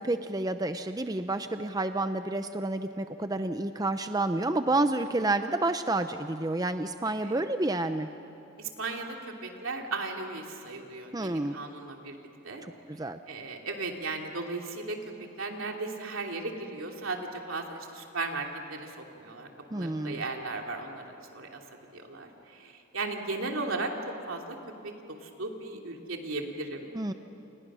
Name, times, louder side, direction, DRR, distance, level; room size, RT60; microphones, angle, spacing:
voice 1, 0.0-8.1 11.1-11.6 12.6-13.2 19.7-20.2 26.9-27.1, right 2 dB, 20° right, 9 dB, 0.6 m, -29 dB
voice 2, 7.0-7.4 8.6-12.2 12.4-12.6 13.3-15.0 15.4-21.0 21.3-21.6 21.9-23.9 24.3-24.6 24.8-26.9, right 3 dB, 80° right, 2 dB, 2.9 m, -36 dB
29.0 x 29.0 x 6.3 m, 2.9 s
head